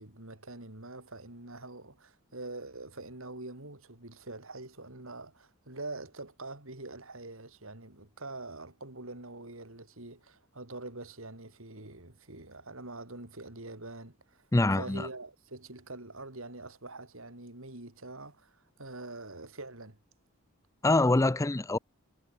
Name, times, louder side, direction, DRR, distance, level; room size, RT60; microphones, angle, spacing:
voice 1, 0.0-14.5 14.7-20.0, right 2 dB, 65° right, 3.4 m, -44 dB
voice 2, 14.5-15.1 20.8-21.8, left 2 dB, 15° left, 0.5 m, -25 dB
head